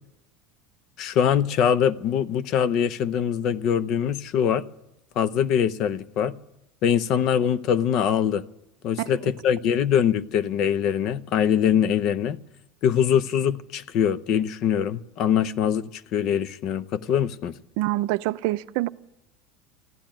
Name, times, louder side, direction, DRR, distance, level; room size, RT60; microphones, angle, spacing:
voice 1, 1.0-4.6 5.2-6.3 6.8-8.4 8.8-12.4 12.8-17.5, left 8 dB, 50° left, 0.7 m, -23 dB
voice 2, 17.8-18.9, right 17 dB, 70° right, 0.5 m, -25 dB
15.0 x 10.5 x 8.9 m
supercardioid pair, 135°, 0 cm